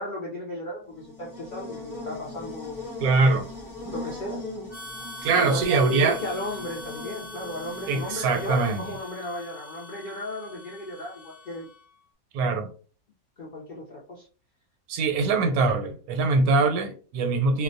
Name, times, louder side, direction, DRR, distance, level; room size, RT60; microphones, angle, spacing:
voice 1, 0.0-2.9 3.9-4.4 5.3-11.7 13.4-14.3 15.2-15.3, left 1 dB, 70° left, 0.4 m, -35 dB
Buzz, 0.9-9.0, left 2 dB, 20° left, 0.6 m, -40 dB
voice 2, 3.0-3.5 5.2-6.2 7.9-8.8 12.3-12.7 14.9-17.6, right 3 dB, 80° right, 1.1 m, -23 dB
Harmonica, 4.7-12.0, left 2 dB, 50° right, 0.3 m, -43 dB
2.5 x 2.0 x 2.6 m
omnidirectional pair, 1.6 m